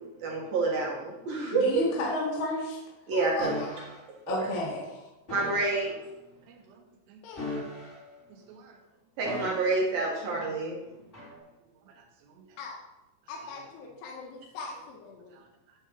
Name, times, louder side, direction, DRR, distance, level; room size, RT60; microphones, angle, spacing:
voice 1, 0.2-1.9 3.1-3.5 4.3-4.5 5.3-5.9 9.2-10.8, right 3 dB, 60° right, -2 dB, 2.7 m, -28 dB
voice 2, 1.5-2.8 4.3-5.1, left 1 dB, 55° left, -5 dB, 3.5 m, -31 dB
voice 3, 3.1-3.9 7.2-7.5 12.6-12.8 13.3-15.4, left 3 dB, 70° left, -1 dB, 2.8 m, -40 dB
sound 1, 3.4-4.0 5.3-5.9 7.3-8.2 9.2-10.0 11.1-11.4, left 1 dB, 15° left, 3.0 m, -38 dB
voice 4, 6.5-7.2 8.3-8.8 10.4-10.5 10.9-11.0 12.0-12.4 15.3-15.5, right 6 dB, 80° right, 1 dB, 4.1 m, -55 dB
12.0 x 4.5 x 7.2 m, 0.99 s
omnidirectional pair, 5.9 m